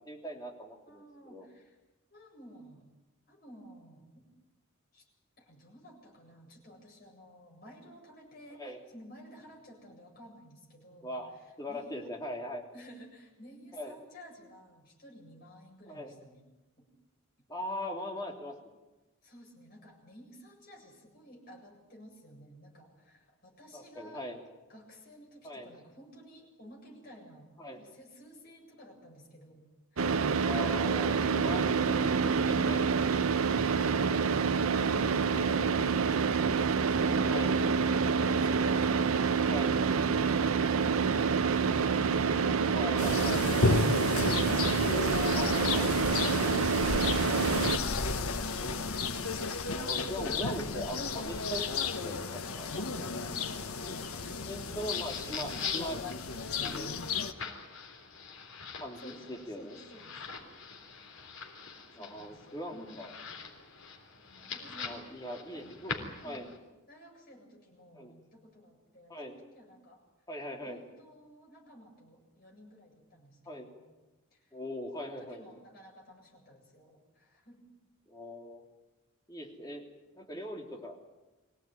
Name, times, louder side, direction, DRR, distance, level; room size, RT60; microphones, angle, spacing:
voice 1, 0.0-1.4 8.6-8.8 11.0-12.7 13.7-13.9 15.9-16.1 17.5-18.5 23.7-24.4 25.4-25.7 27.6-27.8 30.4-32.8 37.3-37.5 39.5-39.7 42.7-43.4 45.3-45.9 49.8-52.7 54.4-56.0 56.6-57.0 58.8-59.7 61.9-63.1 64.8-65.9 66.2-66.5 67.9-68.1 69.1-69.3 70.3-70.8 73.4-73.7 74.5-75.4 78.1-78.6 79.3-79.8 80.1-81.0, left 1 dB, 15° left, 1 dB, 3.1 m, -40 dB
voice 2, 0.9-1.8 2.1-2.9 3.3-4.3 4.9-5.1 5.4-12.1 12.7-16.4 16.8-16.9 19.2-27.5 27.7-30.2 52.7-54.8 59.0-60.2 61.9-63.2 64.2-65.2 65.5-65.7 66.2-66.5 66.9-70.0 70.6-74.0 74.3-74.5 75.0-77.7, equal, 45° left, -1 dB, 7.7 m, -53 dB
Car / Idling, 30.0-47.8, right 5 dB, 80° right, 0.8 m, -27 dB
sound 1, 43.0-57.3, left 3 dB, 90° left, 1.4 m, -33 dB
sound 2, 54.6-66.6, left 5 dB, 70° left, 3.5 m, -43 dB
24.0 x 17.5 x 9.3 m, 1.1 s
head